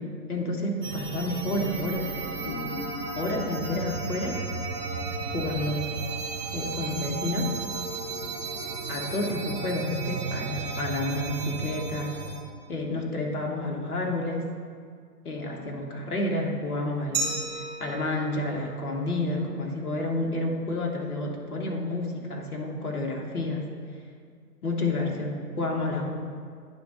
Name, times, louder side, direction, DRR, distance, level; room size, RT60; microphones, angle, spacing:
voice 1, 0.0-2.1 2.4-2.9 3.2-4.4 5.3-5.9 6.5-7.5 8.9-12.2 12.7-14.5 15.2-23.7 24.6-26.1, left 2 dB, 65° left, 0 dB, 1.4 m, -30 dB
sound 1, 0.8-12.4, right 4 dB, 65° right, 1.4 m, -34 dB
Glass, 17.1-19.9, right 3 dB, 25° right, 1.2 m, -35 dB
9.4 x 3.6 x 5.6 m, 2.1 s
figure-of-eight pair, 125°, 47 cm